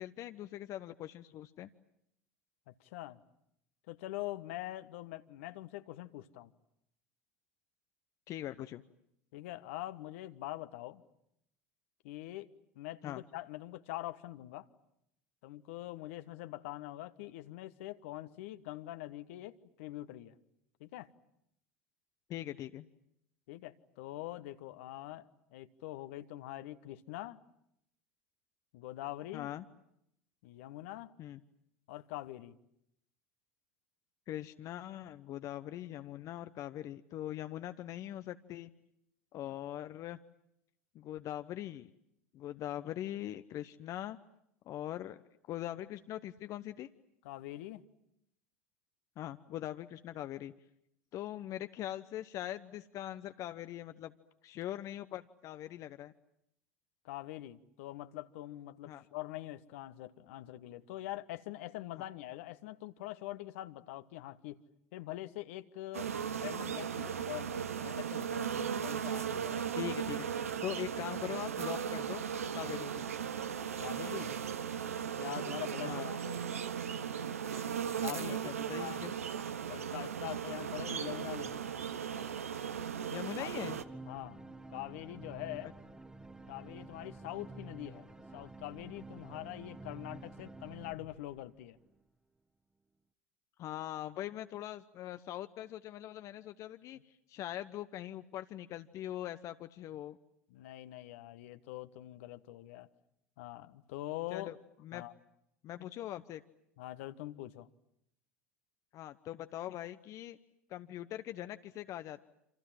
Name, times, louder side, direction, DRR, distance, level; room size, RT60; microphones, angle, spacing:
voice 1, 0.0-1.7 8.3-8.8 13.0-13.2 22.3-22.9 29.3-29.6 31.2-31.4 34.3-38.7 39.3-40.2 40.9-41.9 42.3-44.2 44.7-45.2 45.5-46.9 49.2-50.5 51.1-54.1 54.4-56.1 58.9-59.0 69.7-70.3 70.6-72.2 72.5-73.1 75.8-76.1 78.0-79.1 83.1-83.8 93.6-100.2 104.3-104.5 104.8-105.0 105.6-106.4 108.9-110.4 110.7-112.2, left 13 dB, 45° left, 10 dB, 1.0 m, -42 dB
voice 2, 2.7-3.2 3.9-6.5 9.3-11.0 12.0-14.7 15.4-20.3 20.8-21.1 23.5-27.4 28.7-29.5 30.4-31.1 31.9-32.5 47.2-47.8 57.0-64.6 64.9-69.7 72.6-72.8 73.8-74.4 75.2-76.6 78.0-78.5 78.8-79.0 79.7-81.6 83.4-83.5 84.1-84.4 84.7-85.7 86.5-88.1 88.3-91.8 100.5-102.9 103.4-104.5 104.9-105.1 106.8-107.7, left 16 dB, 65° left, 11 dB, 1.4 m, -44 dB
sound 1, 65.9-83.8, right 8 dB, 80° right, 1.2 m, -37 dB
sound 2, 83.5-92.0, right 2 dB, 10° right, 1.8 m, -50 dB
28.0 x 27.0 x 7.6 m, 0.78 s
figure-of-eight pair, 75°, 8 cm